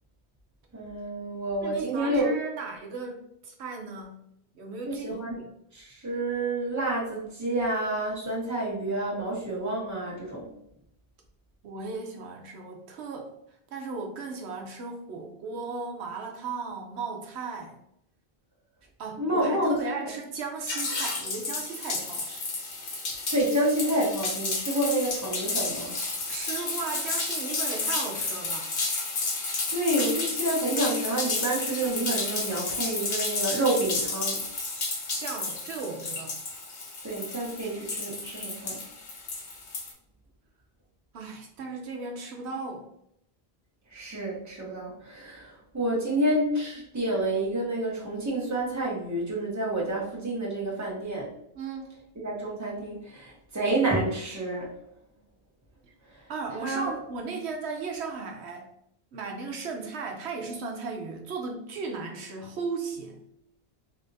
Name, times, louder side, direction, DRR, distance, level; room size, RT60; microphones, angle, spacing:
voice 1, 0.7-2.3 4.8-5.4 5.7-10.5 19.2-20.1 23.3-25.9 29.7-34.4 37.0-38.8 43.9-51.3 52.2-54.7 56.6-56.9, right 1 dB, 15° right, -4 dB, 0.9 m, -29 dB
voice 2, 1.6-4.3 4.5-5.1 5.4-5.5 11.6-13.3 13.7-17.8 19.0-22.5 26.3-28.8 35.2-36.4 41.1-42.9 51.5-51.9 55.8-55.9 56.3-58.7 59.1-63.3, right 4 dB, 80° right, 2 dB, 0.9 m, -36 dB
sound 1, 20.7-39.9, left 3 dB, 85° left, 1.2 m, -32 dB
3.5 x 2.9 x 2.6 m, 0.75 s
omnidirectional pair, 1.1 m